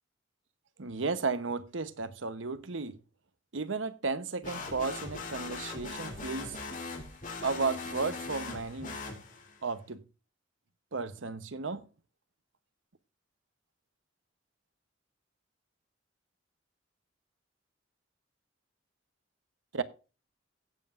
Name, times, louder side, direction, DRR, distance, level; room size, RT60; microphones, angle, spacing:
voice 1, 0.8-3.0 3.5-6.6 7.4-9.0 9.6-10.0 10.9-11.8 19.7-19.8, right 4 dB, 75° right, 0.9 m, -34 dB
sound 1, 4.4-9.6, left 3 dB, 45° left, 3.3 m, -40 dB
16.5 x 7.6 x 2.5 m
head